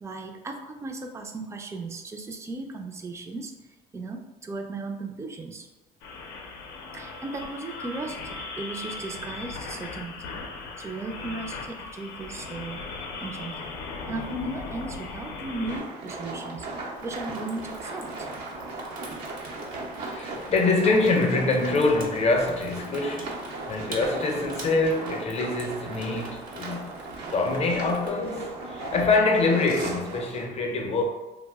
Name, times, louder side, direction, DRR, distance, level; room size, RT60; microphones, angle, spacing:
voice 1, 0.0-3.5 3.9-5.7 6.9-10.4 10.8-12.9 13.2-13.8 14.1-16.7 17.0-18.3, right 2 dB, 15° right, 0.3 m, -36 dB
sound 1, 6.0-15.8, left 3 dB, 85° left, 0.5 m, -38 dB
sound 2, 15.7-30.4, right 2 dB, 90° right, 0.7 m, -37 dB
Water tap faucet / Sink (filling or washing), 16.9-28.1, right 2 dB, 55° right, 0.6 m, -45 dB
voice 2, 20.1-23.4 23.7-27.0 27.3-31.0, left 3 dB, 40° left, 0.5 m, -25 dB
2.9 x 2.0 x 3.4 m
cardioid pair, 110°, 17 cm